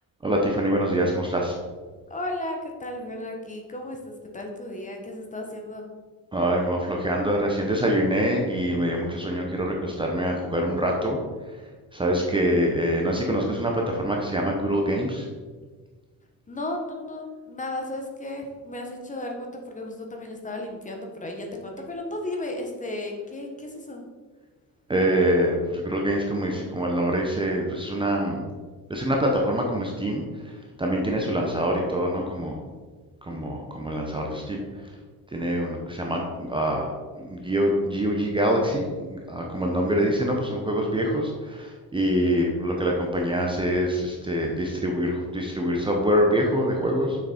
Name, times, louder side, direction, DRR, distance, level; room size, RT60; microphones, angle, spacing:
voice 1, 0.2-1.6 6.3-11.2 11.5-11.6 11.9-15.3 24.9-28.4 28.9-32.6 33.2-34.6 35.3-36.9 37.2-47.2, equal, 15° right, 0 dB, 0.8 m, -25 dB
voice 2, 2.1-5.8 16.5-24.0, left 1 dB, 20° left, 2 dB, 1.2 m, -34 dB
6.9 x 6.0 x 4.2 m, 1.4 s
cardioid pair, 140°, 37 cm